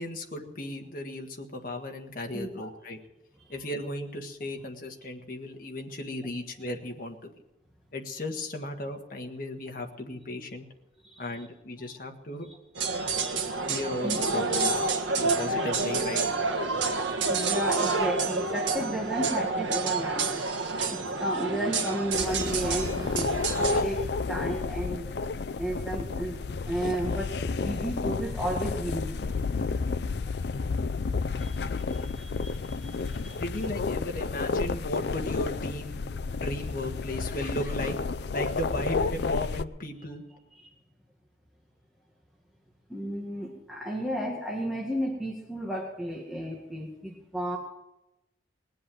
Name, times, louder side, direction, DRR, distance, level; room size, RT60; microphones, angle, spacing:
voice 1, 0.0-3.0 3.5-7.3 7.9-10.6 11.2-12.5 13.6-14.9 15.1-16.2 33.3-40.2, left 1 dB, 45° left, 2 dB, 1.6 m, -36 dB
voice 2, 2.3-2.7 11.0-11.2 12.8-13.7 14.0-14.2 15.0-15.2 17.3-20.4 20.9-25.1 25.6-26.4 26.6-29.1 29.9-30.0 31.4-33.4 42.9-47.6, equal, ahead, -3 dB, 1.8 m, -33 dB
sound 1, 12.8-23.8, right 4 dB, 85° right, 1.6 m, -28 dB
sound 2, 22.1-39.6, left 4 dB, 60° left, 0.4 m, -31 dB
20.0 x 7.8 x 7.6 m, 0.92 s
head